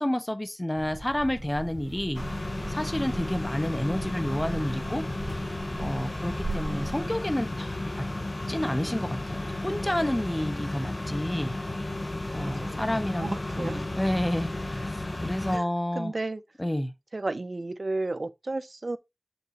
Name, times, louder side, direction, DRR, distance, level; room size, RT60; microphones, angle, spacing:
voice 1, 0.0-2.2 2.7-5.1 5.8-8.1 8.5-11.6 12.3-13.3 13.6-16.1 16.6-16.9, left 1 dB, 25° left, 1.3 m, -30 dB
sound 1, 0.7-7.0, right 2 dB, 40° right, 2.7 m, -39 dB
sound 2, 2.1-15.6, left 2 dB, 45° left, 1.1 m, -33 dB
voice 2, 6.0-6.4 12.4-14.0 15.5-16.4 17.1-19.0, right 2 dB, 75° right, 0.8 m, -34 dB
6.7 x 6.3 x 3.0 m
wide cardioid pair, 50°, 0 cm